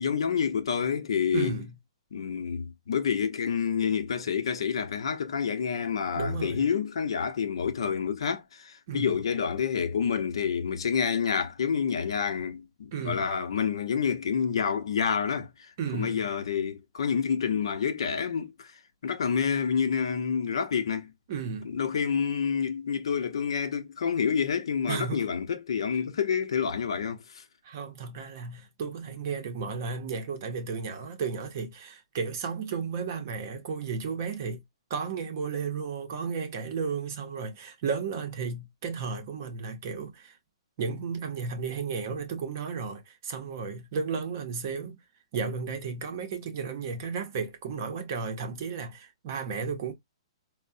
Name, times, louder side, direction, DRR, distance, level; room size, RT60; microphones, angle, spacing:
voice 1, 0.0-1.6 2.1-18.7 19.0-21.1 21.6-27.4, left 7 dB, 65° left, 0.7 m, -28 dB
voice 2, 1.3-1.8 6.2-6.7 8.9-9.2 12.9-13.3 15.8-16.3 21.3-21.7 24.9-25.3 27.6-34.6 34.9-40.3 40.8-45.0 45.3-49.9, right 5 dB, 30° right, 0.7 m, -33 dB
4.5 x 2.1 x 2.6 m
hypercardioid pair, 180°, 3 cm